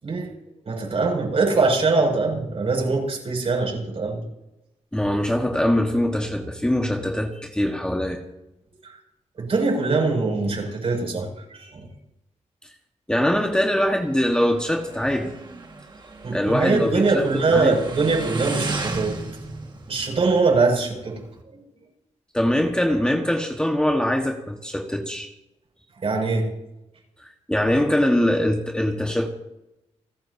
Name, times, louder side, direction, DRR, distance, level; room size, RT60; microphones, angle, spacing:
voice 1, 0.6-4.2 8.8-8.9 9.4-11.9 16.2-19.1 19.9-21.2 21.5-21.6 26.0-26.5, right 3 dB, 55° right, -1 dB, 6.6 m, -22 dB
voice 2, 4.9-8.2 13.1-15.3 16.3-17.8 22.3-25.3 27.2-29.3, left 1 dB, 5° left, 2 dB, 1.5 m, -22 dB
Motorcycle, 13.1-21.4, right 3 dB, 40° right, 1.8 m, -36 dB
29.5 x 12.5 x 2.8 m, 0.90 s
cardioid pair, 95°, 12 cm